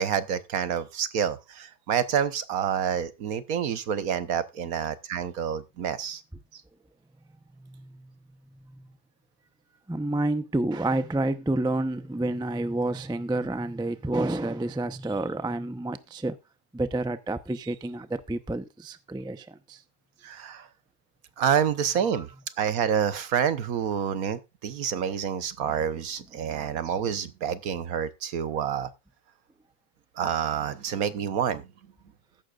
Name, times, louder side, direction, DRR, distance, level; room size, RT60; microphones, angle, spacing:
voice 1, 0.0-6.2 20.2-20.7 21.4-22.3 22.6-28.9 30.2-31.6, right 8 dB, 70° right, 1.4 m, -28 dB
voice 2, 7.6-8.1 8.6-8.9 9.9-16.4 16.7-19.8 22.1-22.2, right 2 dB, 5° right, 0.4 m, -29 dB
14.5 x 11.5 x 2.4 m
omnidirectional pair, 1.6 m